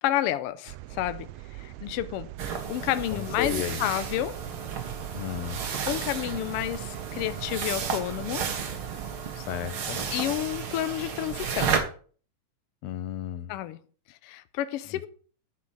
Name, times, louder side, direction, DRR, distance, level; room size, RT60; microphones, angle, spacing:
voice 1, 0.0-1.3 1.6-2.3 2.7-4.3 5.8-8.5 10.1-11.8 13.5-13.8 14.2-15.1, left 13 dB, 85° left, 1.3 m, -30 dB
sound 1, 0.7-9.1, right 16 dB, 85° right, 2.0 m, -42 dB
sound 2, 2.4-11.8, right 6 dB, 55° right, 2.0 m, -33 dB
voice 2, 3.1-3.8 5.1-5.6 9.4-10.0 12.8-13.5 14.9-15.1, left 11 dB, 70° left, 1.9 m, -33 dB
10.0 x 6.1 x 5.5 m
omnidirectional pair, 3.4 m